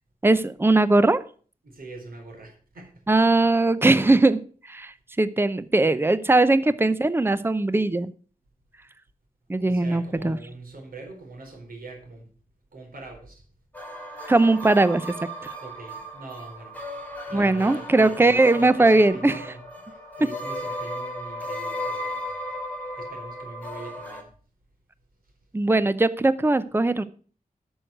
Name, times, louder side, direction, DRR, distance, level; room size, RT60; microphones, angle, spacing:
voice 1, 0.2-1.2 3.1-4.4 4.7-4.9 5.2-8.1 9.5-10.4 14.3-15.1 17.3-19.4 25.5-27.0, right 2 dB, 15° right, 15 dB, 0.6 m, -20 dB
voice 2, 1.6-3.3 9.6-12.3 12.7-13.4 15.6-24.3, right 3 dB, 90° right, 2 dB, 4.2 m, -43 dB
sound 1, 13.7-24.2, left 1 dB, 10° left, 2.9 m, -35 dB
12.5 x 6.4 x 6.4 m, 0.41 s
wide cardioid pair, 105°, 15 cm